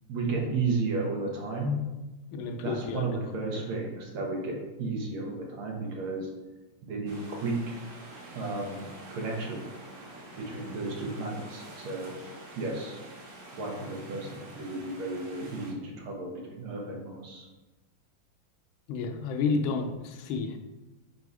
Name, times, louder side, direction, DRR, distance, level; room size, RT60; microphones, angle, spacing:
voice 1, 0.1-1.8 2.6-6.3 6.8-7.8 8.3-9.7 10.4-12.2 12.6-13.0 13.5-17.5, right 3 dB, 85° right, 0 dB, 2.0 m, -33 dB
voice 2, 2.3-3.2 3.5-3.7 18.9-20.6, left 4 dB, 80° left, 6 dB, 1.4 m, -31 dB
sound 1, 7.1-15.7, right 1 dB, 45° right, 1.2 m, -47 dB
4.7 x 4.2 x 4.8 m, 1.1 s
omnidirectional pair, 2.3 m